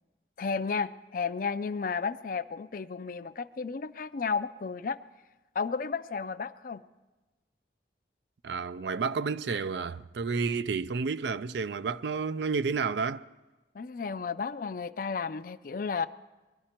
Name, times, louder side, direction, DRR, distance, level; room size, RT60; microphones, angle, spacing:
voice 1, 0.4-5.0 5.5-6.8 13.7-16.1, left 5 dB, 50° left, 0.4 m, -33 dB
voice 2, 8.4-13.3, right 5 dB, 70° right, 0.4 m, -31 dB
21.0 x 12.0 x 4.4 m
head